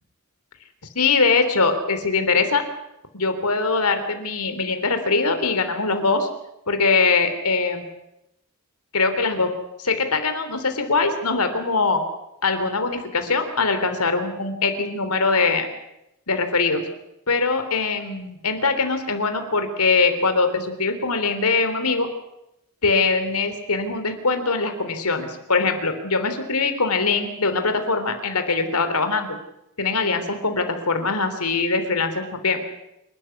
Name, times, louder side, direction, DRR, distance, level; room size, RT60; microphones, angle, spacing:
voice 1, 1.0-2.6 3.1-6.3 6.7-7.8 8.9-9.5 9.8-12.0 12.4-15.7 16.3-16.8 17.3-22.1 22.8-29.4 29.8-32.6, left 4 dB, 90° left, 8 dB, 3.6 m, -22 dB
28.0 x 13.0 x 9.6 m, 0.86 s
head